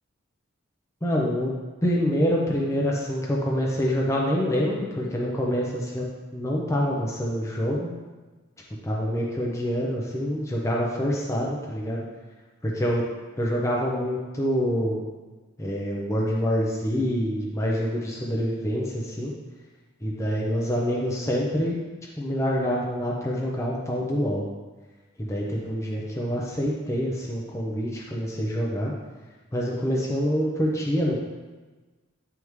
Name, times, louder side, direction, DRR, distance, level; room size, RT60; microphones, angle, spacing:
voice 1, 1.0-6.1 6.3-7.9 8.8-12.0 12.6-13.0 13.4-15.0 15.6-19.3 20.0-21.8 22.2-24.5 25.2-28.9 29.5-31.2, equal, 15° left, -3 dB, 0.6 m, -26 dB
9.3 x 3.5 x 3.1 m, 1.3 s
head